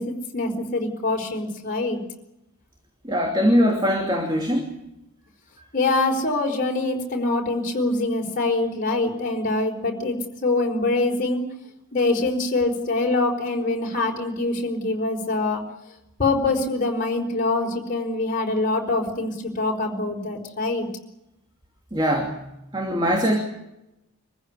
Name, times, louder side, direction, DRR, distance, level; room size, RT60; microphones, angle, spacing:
voice 1, 0.0-2.0 5.7-10.2 10.4-11.4 11.9-15.6 16.2-20.9, left 2 dB, 35° left, 0 dB, 4.5 m, -24 dB
voice 2, 3.0-4.7 21.9-23.4, equal, 20° right, 2 dB, 2.7 m, -22 dB
24.5 x 15.0 x 9.9 m, 0.88 s
head